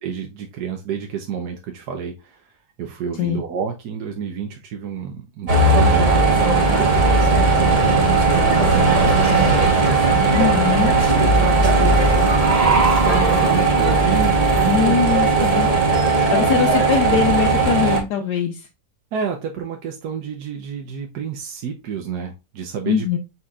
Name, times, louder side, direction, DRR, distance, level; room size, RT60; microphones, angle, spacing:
voice 1, 0.0-2.4 2.8-10.0 11.2-15.0 15.3-16.5 17.1-17.3 19.1-23.1, right 7 dB, 75° right, 2 dB, 1.3 m, -29 dB
sound 1, 5.5-18.0, right 3 dB, 25° right, 1.0 m, -17 dB
voice 2, 10.3-11.0 14.7-15.7 16.3-18.7 22.9-23.2, left 8 dB, 85° left, 2 dB, 1.3 m, -21 dB
4.9 x 4.3 x 2.3 m, 0.25 s
omnidirectional pair, 1.8 m